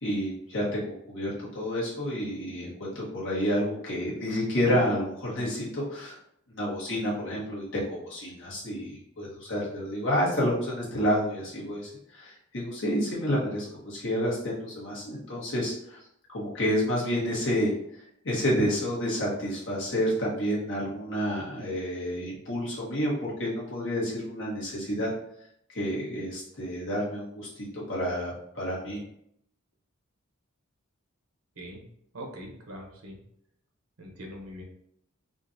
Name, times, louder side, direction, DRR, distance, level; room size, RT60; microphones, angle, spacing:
voice 1, 0.0-6.1 6.5-16.0 16.3-17.7 18.2-25.1 25.7-29.0, equal, 60° left, -5 dB, 1.3 m, -29 dB
voice 2, 32.1-33.2 34.0-34.6, equal, 90° right, 0 dB, 1.0 m, -42 dB
3.7 x 2.5 x 2.7 m, 0.72 s
head